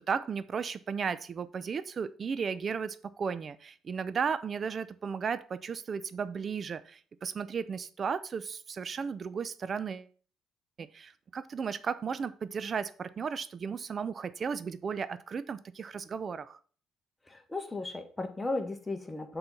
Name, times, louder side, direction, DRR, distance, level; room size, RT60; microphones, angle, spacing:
voice 1, 0.0-10.1 10.8-16.6, right 6 dB, 45° right, 14 dB, 0.6 m, -35 dB
voice 2, 17.3-19.4, left 2 dB, 15° left, 6 dB, 1.4 m, -35 dB
6.8 x 4.0 x 5.8 m, 0.43 s
supercardioid pair, 65°, 0 cm